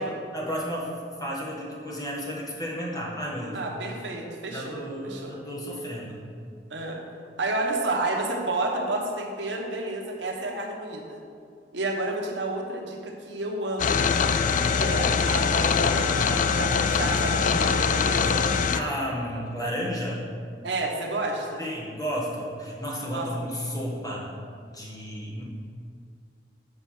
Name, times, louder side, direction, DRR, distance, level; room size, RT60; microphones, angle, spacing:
voice 1, 0.3-3.6 4.5-6.2 14.4-14.8 18.7-20.2 21.6-24.3 24.7-25.4, equal, 20° left, -4 dB, 1.7 m, -32 dB
voice 2, 3.5-5.4 6.7-7.0 7.4-11.2 11.7-14.2 14.7-18.4 20.6-21.6 23.1-23.3, right 2 dB, 80° right, 0 dB, 1.2 m, -30 dB
sound 1, 13.8-18.8, left 5 dB, 45° left, 0.4 m, -23 dB
7.6 x 5.5 x 6.3 m, 2.4 s
head